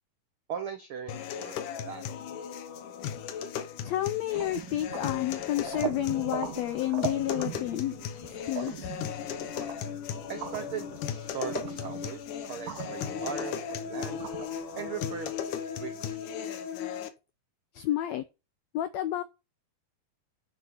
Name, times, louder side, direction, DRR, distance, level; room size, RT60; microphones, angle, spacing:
voice 1, 0.5-2.1 10.3-14.3 14.7-16.2, right 7 dB, 85° right, 1.1 m, -39 dB
sound 1, 1.1-17.1, left 8 dB, 75° left, 2.5 m, -37 dB
voice 2, 3.8-7.9 8.2-8.9 17.7-18.2 18.7-19.2, left 13 dB, 90° left, 1.5 m, -30 dB
sound 2, 4.3-15.5, right 8 dB, 70° right, 2.6 m, -40 dB
9.9 x 6.6 x 4.3 m
omnidirectional pair, 3.8 m